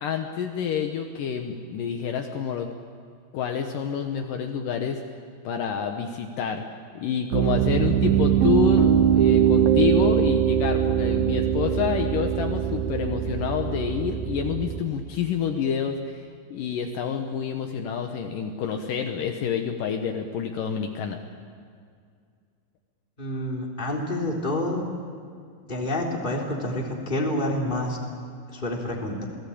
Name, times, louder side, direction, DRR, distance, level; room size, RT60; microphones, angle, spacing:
voice 1, 0.0-2.7 3.3-5.0 5.4-6.6 7.0-16.2 16.5-21.2, left 7 dB, 70° left, 4 dB, 2.6 m, -28 dB
Piano, 7.3-14.8, right 9 dB, 75° right, 2.8 m, -22 dB
voice 2, 23.2-24.8 25.7-28.0 28.5-29.3, left 1 dB, 15° left, -1 dB, 3.5 m, -28 dB
29.0 x 19.0 x 8.7 m, 2.2 s
omnidirectional pair, 4.2 m